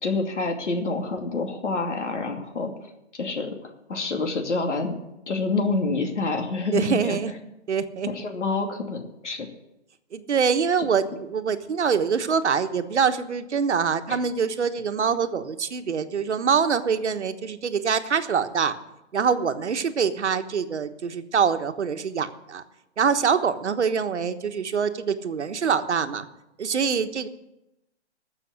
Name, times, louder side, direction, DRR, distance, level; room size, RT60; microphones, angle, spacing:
voice 1, 0.0-2.7 3.1-3.6 3.9-4.9 5.3-7.2 8.1-9.5 14.1-14.2, left 3 dB, 85° left, 3 dB, 2.6 m, -27 dB
voice 2, 6.7-7.3 7.7-8.1 10.1-18.8 19.1-22.6 23.0-26.2 26.6-27.3, right 6 dB, 75° right, 9 dB, 1.3 m, -24 dB
14.0 x 7.0 x 9.6 m, 0.90 s
hypercardioid pair, 175°, 35 cm